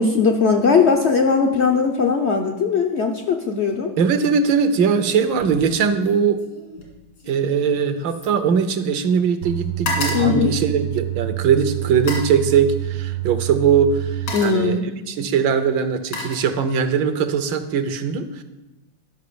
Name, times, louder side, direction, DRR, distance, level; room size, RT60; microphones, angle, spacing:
voice 1, 0.0-3.9 10.1-10.5 14.3-14.9, left 5 dB, 65° left, 3 dB, 0.6 m, -19 dB
voice 2, 4.0-6.4 7.3-14.8 15.1-18.4, right 6 dB, 75° right, 10 dB, 1.5 m, -20 dB
sound 1, 5.3-5.7 6.0-9.1 9.4-11.3 11.9-12.4 13.4-13.6 14.0-14.7 15.6-17.0 17.3-17.7, left 2 dB, 80° left, 3.0 m, -32 dB
sound 2, 9.4-14.3, right 17 dB, 60° right, 0.9 m, -27 dB
11.5 x 5.7 x 6.8 m, 1.0 s
omnidirectional pair, 2.1 m